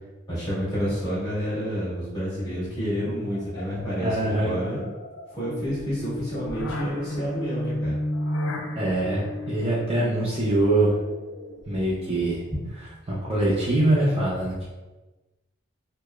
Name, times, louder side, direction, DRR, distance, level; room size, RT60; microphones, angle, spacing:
voice 1, 0.3-4.8 5.3-7.9 12.5-12.7, equal, 20° left, -9 dB, 1.5 m, -29 dB
sound 1, 3.0-12.1, left 1 dB, 85° left, 0.4 m, -34 dB
voice 2, 4.0-4.6 8.8-10.9 11.7-12.4 13.1-14.7, right 1 dB, 30° right, -6 dB, 0.5 m, -23 dB
4.6 x 2.0 x 2.3 m, 1.1 s
head